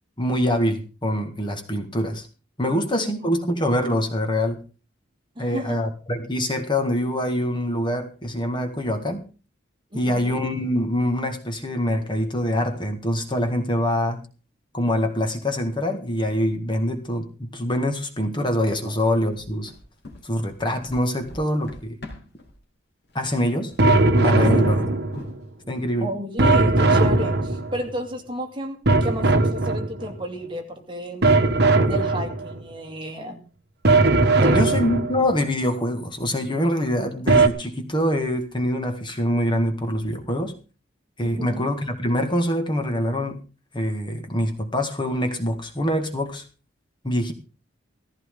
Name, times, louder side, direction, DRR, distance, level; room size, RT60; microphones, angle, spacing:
voice 1, 0.2-2.3 2.6-4.6 5.4-9.2 9.9-14.2 14.7-19.7 20.2-22.0 23.1-23.7 24.2-24.8 25.7-26.1 34.5-40.5 41.2-43.4 43.7-46.5 47.0-47.3, equal, 25° left, 5 dB, 1.9 m, -24 dB
voice 2, 2.7-3.3 5.4-5.8 9.9-10.4 18.8-19.0 24.5-24.8 26.0-31.3 31.8-33.5 34.3-34.8 41.2-41.7, equal, 25° right, 4 dB, 2.5 m, -32 dB
sound 1, 19.3-22.5 23.0-23.4 23.6-23.9 24.4-24.6 25.1-25.7, left 1 dB, 55° left, 3.7 m, -41 dB
sound 2, 23.8-25.4 26.4-27.9 28.9-30.2 31.2-32.6 33.8-35.4 37.3-37.5, right 2 dB, 55° right, 1.4 m, -19 dB
16.5 x 15.0 x 3.8 m, 0.35 s
head